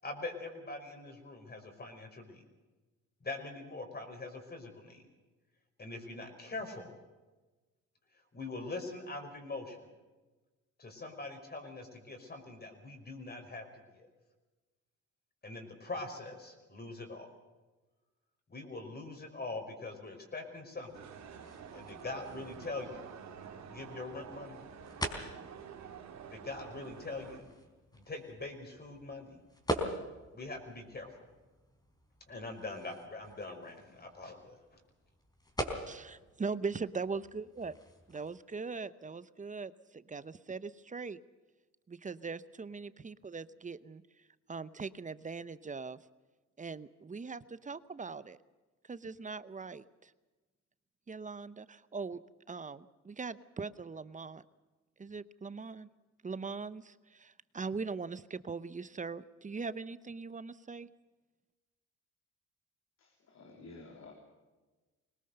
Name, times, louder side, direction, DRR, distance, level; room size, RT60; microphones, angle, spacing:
voice 1, 0.0-2.4 3.2-5.1 5.8-6.9 8.3-9.9 10.8-13.6 13.9-14.1 15.4-17.3 18.5-21.1 21.7-23.0 23.7-24.6 26.3-27.5 27.9-29.4 30.3-31.1 32.3-34.8, left 2 dB, 30° left, 4 dB, 5.3 m, -43 dB
sound 1, 20.7-38.4, equal, 15° left, 4.0 m, -44 dB
sound 2, 20.9-27.4, right 7 dB, 65° right, 2.4 m, -49 dB
voice 2, 35.9-37.7 38.1-41.2 41.9-44.0 44.5-46.0 46.6-48.4 48.9-50.1 51.1-52.2 52.5-54.4 55.0-55.9 56.2-60.9, right 4 dB, 25° right, 16 dB, 0.8 m, -41 dB
voice 3, 63.0-64.1, left 3 dB, 60° left, 0 dB, 3.6 m, -52 dB
22.0 x 19.5 x 6.7 m, 1.2 s
cardioid pair, 90°, 30 cm